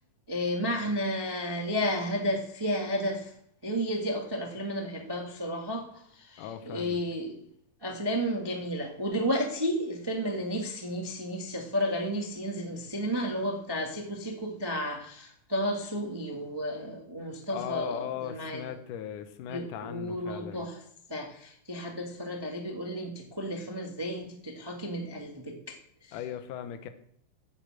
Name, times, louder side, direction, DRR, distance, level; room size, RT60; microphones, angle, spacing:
voice 1, 0.3-3.3 3.6-5.8 6.1-7.4 7.8-18.6 19.5-20.8 21.1-25.7 26.1-26.2, equal, 35° right, 1 dB, 0.4 m, -32 dB
voice 2, 6.4-7.0 17.5-20.6 26.1-26.9, left 10 dB, 85° left, 8 dB, 2.5 m, -38 dB
12.0 x 8.0 x 7.7 m, 0.69 s
omnidirectional pair, 3.6 m